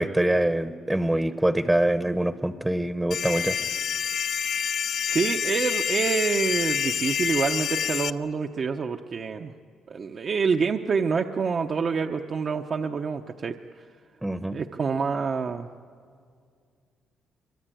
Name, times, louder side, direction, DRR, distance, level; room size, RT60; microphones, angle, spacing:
voice 1, 0.0-3.6 14.2-14.6, right 1 dB, 10° right, 10 dB, 0.9 m, -24 dB
sound 1, 3.1-8.1, left 8 dB, 65° left, 0.6 m, -27 dB
voice 2, 5.1-9.5 9.9-13.6 14.5-15.7, right 5 dB, 45° right, 4 dB, 0.8 m, -27 dB
24.5 x 23.5 x 9.1 m, 2.2 s
cardioid pair, 90°, 0 cm